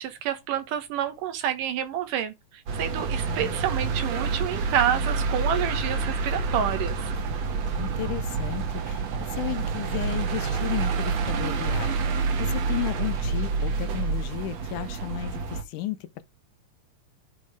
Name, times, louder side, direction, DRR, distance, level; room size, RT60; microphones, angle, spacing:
voice 1, 0.0-2.3 2.7-7.1, right 9 dB, 85° right, 2.9 m, -28 dB
sound 1, 2.7-15.6, right 4 dB, 60° right, 2.3 m, -28 dB
voice 2, 3.3-3.6 7.7-16.2, left 14 dB, 80° left, 2.3 m, -34 dB
8.5 x 3.1 x 4.8 m
omnidirectional pair, 3.7 m